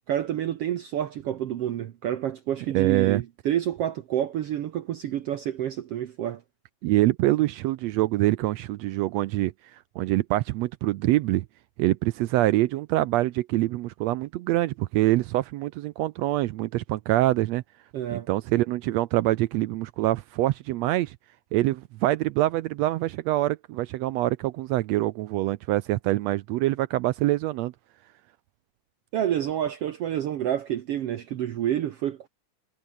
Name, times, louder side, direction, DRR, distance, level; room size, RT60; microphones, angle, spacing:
voice 1, 0.1-6.4 17.9-18.3 29.1-32.3, right 11 dB, 65° right, 1.7 m, -28 dB
voice 2, 2.7-3.2 6.8-11.4 11.8-17.6 18.1-21.2 21.5-27.7, right 16 dB, 85° right, 1.5 m, -25 dB
omnidirectional pair, 3.6 m